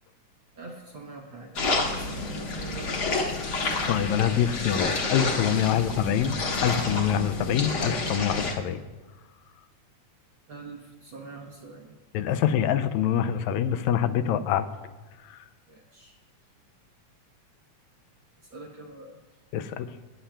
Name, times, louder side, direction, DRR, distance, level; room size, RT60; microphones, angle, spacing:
voice 1, 0.6-3.7 5.8-5.9 10.5-11.9 15.7-16.2 18.5-19.2, right 3 dB, 65° right, 0 dB, 1.2 m, -45 dB
sound 1, 1.6-8.5, left 3 dB, 50° left, 1.2 m, -29 dB
voice 2, 3.9-6.3 6.6-8.8 12.1-14.7 15.3-15.4 19.5-19.9, left 9 dB, 80° left, 10 dB, 1.9 m, -25 dB
21.5 x 9.9 x 2.3 m, 1.2 s
omnidirectional pair, 3.4 m